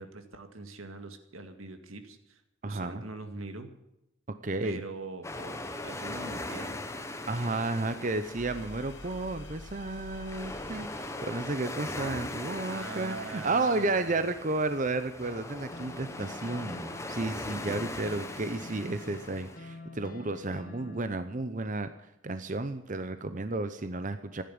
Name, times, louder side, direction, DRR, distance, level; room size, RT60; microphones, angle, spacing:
voice 1, 0.0-3.7 4.6-5.6 5.8-6.8 12.5-14.2, right 2 dB, 85° right, 7 dB, 2.1 m, -42 dB
voice 2, 2.6-3.0 4.4-4.8 7.3-21.9 22.2-24.4, right 2 dB, 40° right, 10 dB, 0.8 m, -32 dB
sound 1, 5.2-19.6, left 2 dB, 15° left, 1.1 m, -40 dB
sound 2, 8.3-11.9, left 2 dB, 55° left, 1.1 m, -48 dB
sound 3, 15.2-21.0, left 1 dB, 40° left, 1.5 m, -47 dB
15.0 x 10.5 x 8.7 m, 0.85 s
head